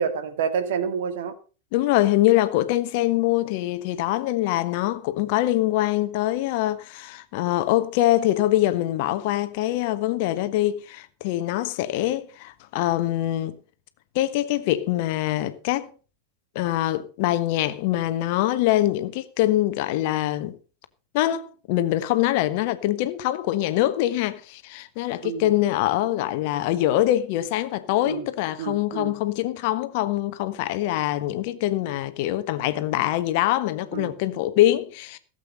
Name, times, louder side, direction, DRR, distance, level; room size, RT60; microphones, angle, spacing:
voice 1, 0.0-1.3 25.2-25.5 28.1-28.3 28.6-29.1 33.9-34.1, right 7 dB, 55° right, 2.0 m, -28 dB
voice 2, 1.7-13.6 14.1-15.9 16.5-20.6 21.1-35.2, left 14 dB, 50° left, 1.2 m, -24 dB
16.5 x 8.1 x 5.4 m
figure-of-eight pair, 90°, 0 cm